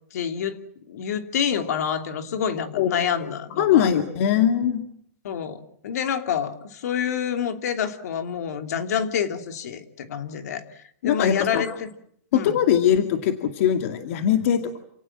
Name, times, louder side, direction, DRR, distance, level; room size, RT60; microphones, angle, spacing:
voice 1, 0.1-0.6 0.9-3.9 5.2-10.6 11.0-11.9 12.3-12.6, left 8 dB, 70° left, 7 dB, 3.0 m, -27 dB
voice 2, 3.6-4.8 11.0-11.6 12.3-14.8, left 9 dB, 50° left, 6 dB, 2.3 m, -21 dB
29.0 x 18.5 x 7.5 m, 0.70 s
supercardioid pair, 165°, 9 cm